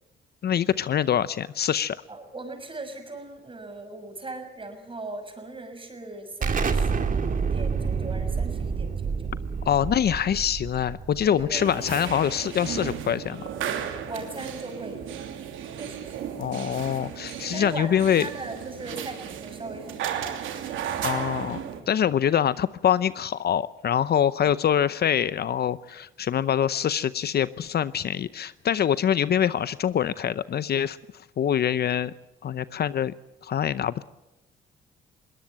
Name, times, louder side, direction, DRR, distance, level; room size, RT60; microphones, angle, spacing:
voice 1, 0.4-2.0 9.6-13.4 16.4-18.3 21.0-31.0 31.4-32.1 32.4-33.1 33.4-34.0, left 9 dB, 55° left, 16 dB, 0.7 m, -24 dB
voice 2, 2.1-9.2 11.2-11.8 14.1-15.2 15.7-16.2 17.5-20.4, right 2 dB, 25° right, 6 dB, 6.2 m, -39 dB
Explosion, 6.4-11.9, right 5 dB, 45° right, 2.3 m, -28 dB
sound 1, 11.5-21.8, right 8 dB, 80° right, 2.9 m, -34 dB
21.5 x 18.5 x 8.9 m, 0.94 s
cardioid pair, 90°, 20 cm